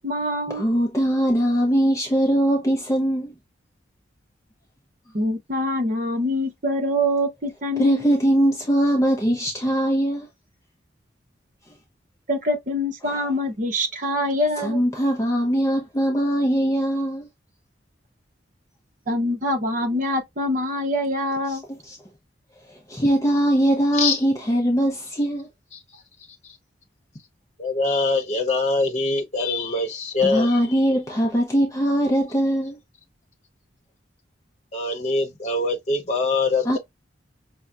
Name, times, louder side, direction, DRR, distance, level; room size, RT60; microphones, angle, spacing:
voice 1, 0.0-0.6 5.1-8.1 12.3-14.8 19.1-21.6, left 1 dB, 40° right, 0.8 m, -25 dB
voice 2, 0.5-3.3 7.8-10.3 14.6-17.3 21.9-22.0 22.7-25.5 30.2-32.8 36.6-36.8, equal, 15° left, 0.6 m, -21 dB
voice 3, 27.6-30.6 34.7-36.8, left 3 dB, 35° left, 0.9 m, -23 dB
5.5 x 2.1 x 2.3 m
head